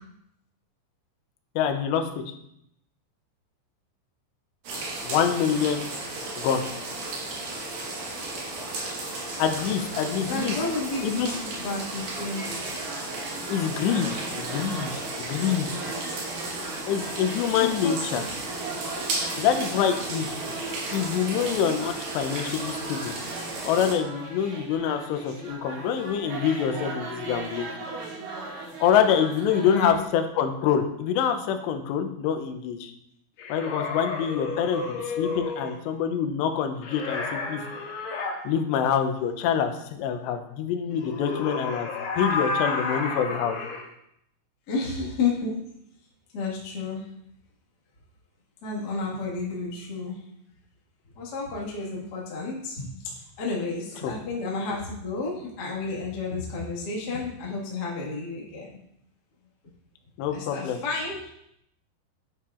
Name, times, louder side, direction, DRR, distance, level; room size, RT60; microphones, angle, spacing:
voice 1, 1.6-2.1 5.0-5.9 6.4-6.7 9.4-10.6 11.0-11.4 13.5-14.9 15.2-15.7 16.9-18.2 19.4-20.5 20.9-23.1 23.6-27.7 28.8-32.9 33.5-37.6 38.4-41.9 42.2-43.6 54.0-54.1 60.2-60.8, left 8 dB, 90° left, 7 dB, 2.9 m, -26 dB
sound 1, 4.6-24.0, right 2 dB, 60° right, 2.9 m, -34 dB
voice 2, 10.3-12.9 16.8-16.9 17.5-18.2 19.3-19.4 29.5-30.0 42.1-42.2 44.7-45.6 46.3-47.1 48.6-50.2 51.1-58.8 60.3-61.3, left 3 dB, 55° left, -4 dB, 1.0 m, -32 dB
sound 2, 12.3-29.9, right 3 dB, 85° right, 3.8 m, -38 dB
sound 3, 33.4-35.8 36.8-38.4 40.9-43.8, left 4 dB, 75° left, 2.9 m, -31 dB
8.4 x 8.3 x 2.5 m, 0.77 s
omnidirectional pair, 4.9 m